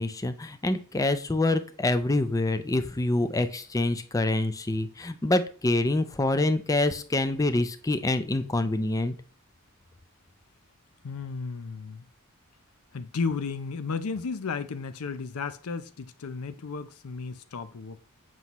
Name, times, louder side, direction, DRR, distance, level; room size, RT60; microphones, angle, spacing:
voice 1, 0.0-9.1, left 2 dB, 15° left, 0.5 m, -26 dB
voice 2, 11.0-12.1 12.9-18.0, left 5 dB, 75° left, 0.6 m, -33 dB
7.6 x 5.5 x 3.0 m
head